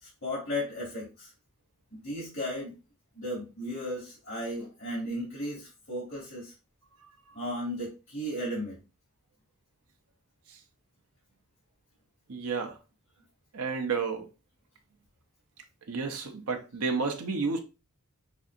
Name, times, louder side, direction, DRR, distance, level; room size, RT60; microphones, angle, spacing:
voice 1, 0.0-1.3 1.9-2.7 3.1-6.5 7.3-8.8, equal, 60° left, 2.6 m, -35 dB
voice 2, 12.3-12.8 13.5-14.3 15.9-17.6, right 4 dB, 85° right, 0.8 m, -31 dB
6.1 x 2.7 x 2.5 m
head